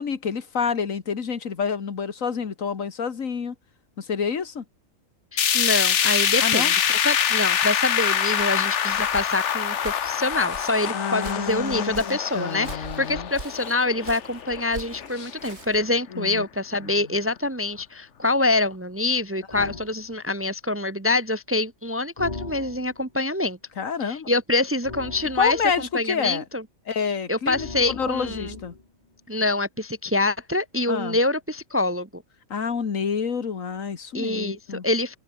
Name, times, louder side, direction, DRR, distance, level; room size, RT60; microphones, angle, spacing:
voice 1, 0.0-3.6 4.0-4.6 6.4-6.7 10.9-13.3 15.1-15.3 16.1-16.5 16.8-16.9 19.5-19.8 23.8-24.3 25.4-26.4 26.9-28.7 30.9-31.2 32.5-34.9, left 6 dB, 85° left, 2.0 m, -28 dB
sound 1, 5.4-15.5 15.9-16.0 16.4-16.5 17.4-17.5, left 8 dB, 65° left, 1.3 m, -25 dB
voice 2, 5.5-23.6 24.1-26.6 27.3-28.5 29.3-32.2 34.1-35.2, left 2 dB, 15° right, 0.6 m, -25 dB
Walk footsteps, 8.0-15.9, right 3 dB, 55° right, 3.0 m, -43 dB
sound 2, 19.5-19.9 22.2-23.1 24.8-25.9 27.5-28.9, left 3 dB, 30° left, 2.1 m, -38 dB
omnidirectional pair, 1.3 m